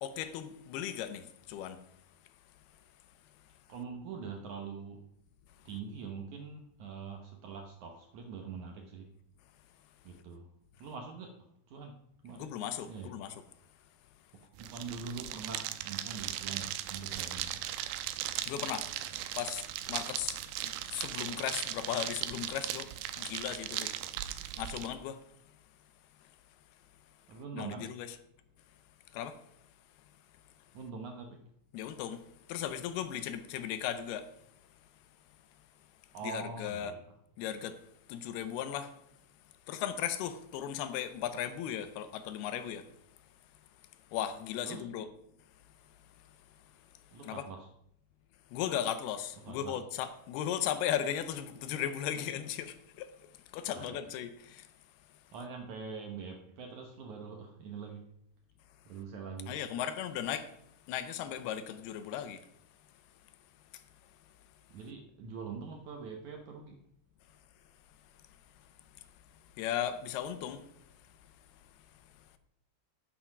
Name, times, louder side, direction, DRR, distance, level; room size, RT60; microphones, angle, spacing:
voice 1, 0.0-1.8 12.4-13.4 18.4-24.0 24.6-25.5 26.2-26.3 27.5-28.1 29.1-29.4 31.7-34.4 34.7-34.8 36.2-36.9 37.4-37.8 38.1-39.0 39.7-42.9 44.1-45.1 45.8-47.4 48.5-54.7 55.1-55.3 59.5-60.6 60.8-62.5 63.7-64.3 67.3-67.4 68.1-72.4, left 10 dB, 80° left, 2.7 m, -37 dB
voice 2, 3.7-5.0 5.7-9.1 10.0-10.5 10.8-12.6 12.9-13.1 14.6-17.7 27.3-27.9 30.7-31.4 36.1-37.0 44.6-44.9 47.1-47.7 49.4-49.8 53.7-54.0 55.3-58.0 58.9-59.6 64.7-66.8, right 5 dB, 70° right, 1.9 m, -44 dB
sound 1, 14.6-24.9, right 12 dB, 85° right, 2.6 m, -38 dB
9.2 x 8.6 x 6.0 m
omnidirectional pair, 4.6 m